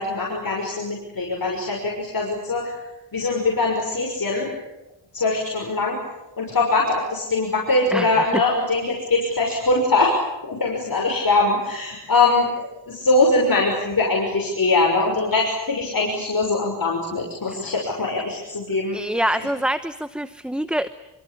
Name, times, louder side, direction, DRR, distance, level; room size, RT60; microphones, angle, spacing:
voice 1, 0.0-2.8 3.1-4.5 5.1-6.0 6.4-10.1 10.4-19.0 19.3-19.5, left 3 dB, 50° left, -1 dB, 6.3 m, -22 dB
voice 2, 7.9-8.4 17.5-17.6 18.9-20.9, right 1 dB, ahead, 11 dB, 0.9 m, -25 dB
27.5 x 24.5 x 8.6 m, 0.98 s
wide cardioid pair, 90°, 44 cm